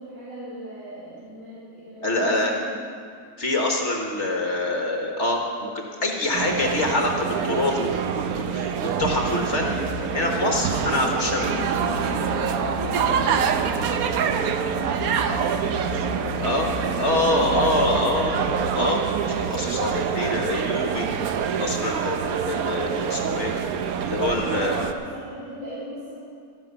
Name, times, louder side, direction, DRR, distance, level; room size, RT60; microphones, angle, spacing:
voice 1, 0.0-2.8 12.8-18.1 24.3-26.1, right 2 dB, 50° right, -12 dB, 3.7 m, -38 dB
voice 2, 2.0-2.5 3.4-9.7 10.1-11.6 16.4-16.7 17.0-18.3 18.7-19.0 19.3-21.1 21.6-23.5 24.0-24.7, left 1 dB, 45° left, 1 dB, 1.5 m, -25 dB
sound 1, 6.3-24.9, right 7 dB, 65° right, 1.1 m, -26 dB
sound 2, 9.6-18.7, left 11 dB, 70° left, 1.0 m, -36 dB
12.5 x 10.5 x 7.0 m, 2.2 s
omnidirectional pair, 1.7 m